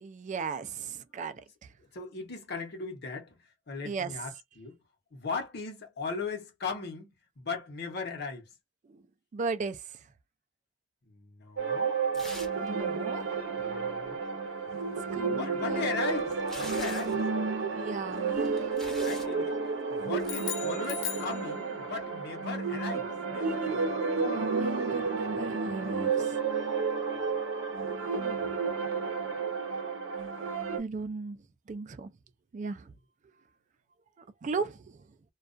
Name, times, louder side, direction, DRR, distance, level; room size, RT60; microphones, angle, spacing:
voice 1, 0.0-1.4 3.9-4.1 9.3-9.8 12.6-13.2 15.1-15.8 17.7-18.7 23.4-23.5 24.3-26.3 28.2-28.4 30.8-31.4 31.7-32.1 32.5-32.8 34.4-34.8, right 4 dB, 40° right, 0.3 m, -36 dB
voice 2, 1.9-4.8 5.1-8.5 11.1-12.0 13.6-14.3 15.3-17.2 19.0-19.6 19.9-23.9, left 4 dB, 55° left, 0.9 m, -38 dB
sound 1, 11.6-30.8, right 4 dB, 85° right, 0.7 m, -31 dB
sound 2, 12.1-12.7 12.9-13.0 15.4-17.2 18.2-19.3 20.1-20.4, equal, ahead, 0.6 m, -45 dB
sound 3, 20.2-22.0, left 10 dB, 85° left, 0.6 m, -38 dB
2.3 x 2.2 x 2.5 m
head